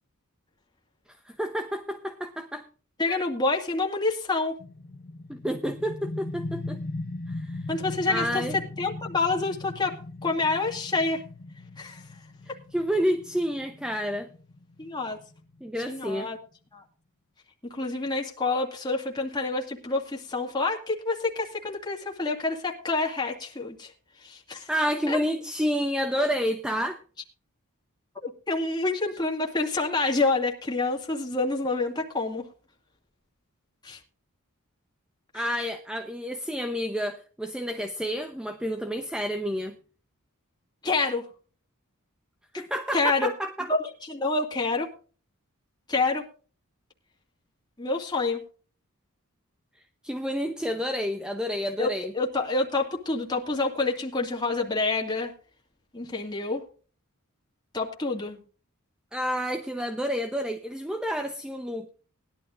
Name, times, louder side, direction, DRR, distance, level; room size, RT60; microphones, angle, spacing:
voice 1, 1.3-2.6 3.1-3.2 5.3-6.8 7.3-7.6 8.1-8.6 12.7-14.3 15.6-16.3 24.7-27.0 35.3-39.7 42.5-43.7 50.0-52.1 59.1-61.9, equal, 5° right, 0.8 m, -29 dB
voice 2, 3.0-4.6 7.7-11.2 11.8-12.0 12.5-12.6 14.8-15.2 15.9-16.4 16.7-16.8 17.7-23.9 24.2-24.7 25.1-25.2 28.2-32.5 33.8-34.0 35.3-35.5 40.8-41.2 42.5-42.6 42.9-43.3 43.7-44.9 45.9-46.3 47.8-48.4 51.8-55.3 55.9-56.6 57.7-58.4, left 3 dB, 20° left, 2.2 m, -28 dB
sound 1, 4.6-16.0, left 2 dB, 45° left, 0.8 m, -39 dB
19.5 x 12.0 x 2.5 m
head